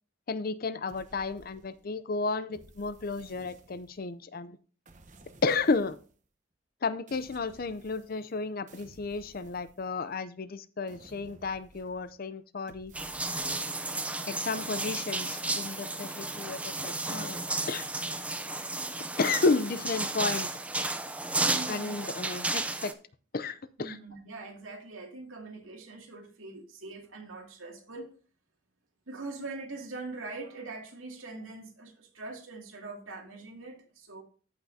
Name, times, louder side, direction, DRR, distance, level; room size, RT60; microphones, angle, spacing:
voice 1, 0.3-4.6 5.4-6.0 6.8-12.9 14.3-17.9 19.2-20.5 21.7-23.0 23.3-24.0, left 4 dB, 45° left, 14 dB, 0.5 m, -32 dB
sound 1, 0.9-2.0 2.5-4.1 4.8-6.2 7.1-8.4 8.7-10.3 10.9-12.2 12.7-13.9, right 2 dB, 40° right, 0.9 m, -56 dB
sound 2, 12.9-22.9, right 2 dB, 5° right, 0.5 m, -33 dB
voice 2, 21.4-22.1 23.8-28.1 29.1-34.2, right 3 dB, 85° right, 1 dB, 2.4 m, -42 dB
14.5 x 5.7 x 2.7 m, 0.40 s
head